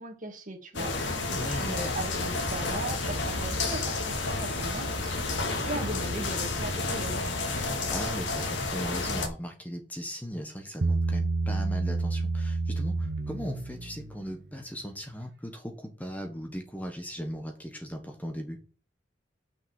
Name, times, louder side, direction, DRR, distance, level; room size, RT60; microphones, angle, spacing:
voice 1, 0.0-7.2, right 2 dB, 45° right, 4 dB, 2.3 m, -38 dB
sound 1, 0.7-9.3, left 3 dB, 85° left, 2.3 m, -30 dB
voice 2, 1.3-1.8 7.9-18.6, equal, 10° left, 4 dB, 1.4 m, -38 dB
Bass guitar, 10.8-14.2, right 3 dB, 65° right, 1.0 m, -29 dB
6.6 x 6.0 x 7.2 m, 0.37 s
head